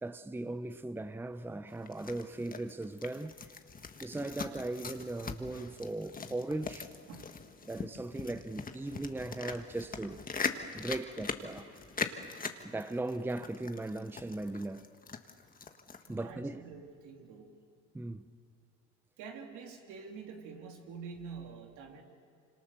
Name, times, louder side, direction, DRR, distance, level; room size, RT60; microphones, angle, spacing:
voice 1, 0.0-3.3 4.0-6.9 7.6-10.2 10.7-11.8 12.6-14.9 16.1-16.6 17.9-18.2, right 2 dB, 5° right, 0.7 m, -38 dB
sound 1, 1.7-16.2, left 5 dB, 30° left, 1.6 m, -41 dB
voice 2, 16.1-17.5 19.2-22.0, right 5 dB, 75° right, 3.5 m, -47 dB
26.0 x 25.5 x 6.8 m
supercardioid pair, 85°, 30 cm